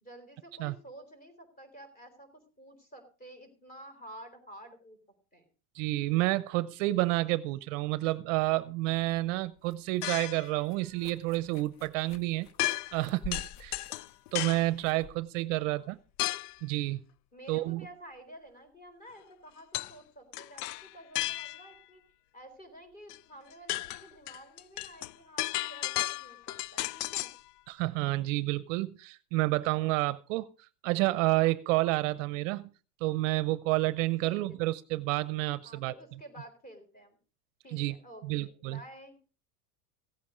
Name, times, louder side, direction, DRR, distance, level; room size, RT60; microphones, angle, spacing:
voice 1, 0.0-5.0 5.3-5.5 15.6-16.0 17.3-22.0 22.3-27.3 34.2-34.6 35.6-37.2 37.6-39.2, right 1 dB, 20° left, 3.9 m, -51 dB
voice 2, 5.7-12.5 12.9-13.8 14.3-16.0 16.2-17.0 17.5-17.9 27.7-30.5 30.8-32.7 33.0-35.9 37.7-37.9 38.2-38.8, right 19 dB, 55° right, 0.7 m, -29 dB
sound 1, 8.9-16.6, left 4 dB, 35° left, 0.9 m, -50 dB
sound 2, 10.0-10.5 12.6-13.0 13.3-14.7 16.2-16.6 19.7-19.9 20.3-21.8 23.1-23.2 23.5-27.4, left 18 dB, 70° left, 0.5 m, -34 dB
16.0 x 8.6 x 5.0 m
supercardioid pair, 150°, 47 cm